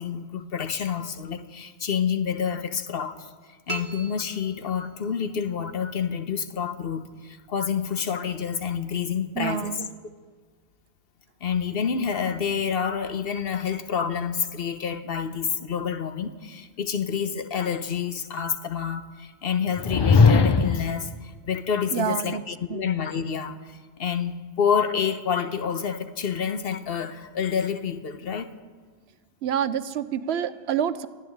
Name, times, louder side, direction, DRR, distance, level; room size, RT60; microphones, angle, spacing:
voice 1, 0.0-3.3 3.7-9.8 11.4-28.5, left 7 dB, 60° left, 10 dB, 1.0 m, -28 dB
sound 1, 3.7-5.2, right 2 dB, 35° right, 1.0 m, -38 dB
voice 2, 9.4-9.9 21.9-22.4 22.7-22.9 29.4-31.1, right 9 dB, 75° right, 14 dB, 0.8 m, -27 dB
sound 2, 19.8-21.0, left 4 dB, 45° left, 0.3 m, -18 dB
13.5 x 10.5 x 9.2 m, 1.5 s
omnidirectional pair, 1.1 m